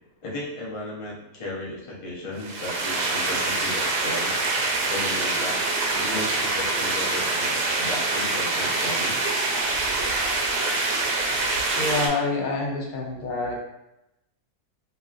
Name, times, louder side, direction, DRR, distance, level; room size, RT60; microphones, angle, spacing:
voice 1, 0.2-4.3 4.9-5.6 5.9-9.2, left 1 dB, 40° left, -4 dB, 0.5 m, -35 dB
sound 1, 2.4-12.1, right 2 dB, 80° right, 1.1 m, -25 dB
voice 2, 11.7-13.6, left 3 dB, 75° left, -1 dB, 1.2 m, -27 dB
3.0 x 2.7 x 2.4 m, 0.85 s
omnidirectional pair, 1.6 m